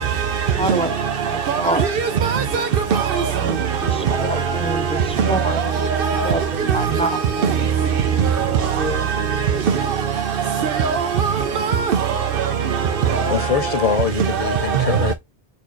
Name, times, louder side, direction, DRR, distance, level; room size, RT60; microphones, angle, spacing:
voice 1, 0.6-0.9 1.2-1.8 3.3-5.7 6.2-7.2 8.6-9.1, right 1 dB, 10° left, 0.3 m, -27 dB
voice 2, 1.5-1.9 2.2-3.1 6.0-6.3 7.0-7.1 10.8-10.9 11.2-11.9, right 6 dB, 70° right, 0.8 m, -20 dB
voice 3, 13.3-15.1, left 6 dB, 40° left, 0.8 m, -23 dB
4.2 x 2.7 x 4.6 m
omnidirectional pair, 1.0 m